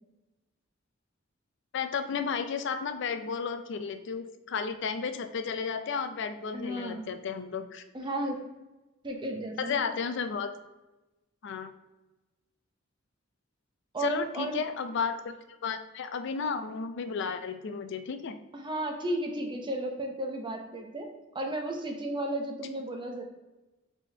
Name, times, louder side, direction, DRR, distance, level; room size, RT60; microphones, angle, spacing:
voice 1, 1.7-7.8 9.6-10.5 11.4-11.7 14.0-15.3 15.6-18.4, left 6 dB, 65° left, 9 dB, 0.4 m, -33 dB
voice 2, 6.5-7.0 7.9-8.4 9.0-9.8 13.9-14.6 18.5-23.2, right 1 dB, 25° right, 3 dB, 0.7 m, -34 dB
5.1 x 3.5 x 2.7 m, 1.1 s
head